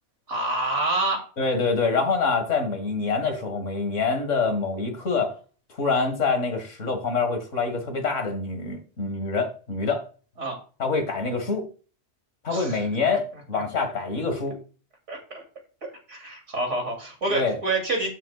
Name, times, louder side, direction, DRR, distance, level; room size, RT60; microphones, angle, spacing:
voice 1, 0.3-1.2 10.4-10.6 12.5-12.8 13.1-13.2 13.5-13.6 15.1-15.4 15.8-18.1, right 2 dB, 75° right, 2 dB, 3.1 m, -28 dB
voice 2, 1.4-5.3 5.7-10.0 10.8-11.6 12.4-14.6 17.3-17.6, left 4 dB, 80° left, 6 dB, 2.1 m, -25 dB
12.5 x 6.5 x 2.4 m, 0.37 s
omnidirectional pair, 1.3 m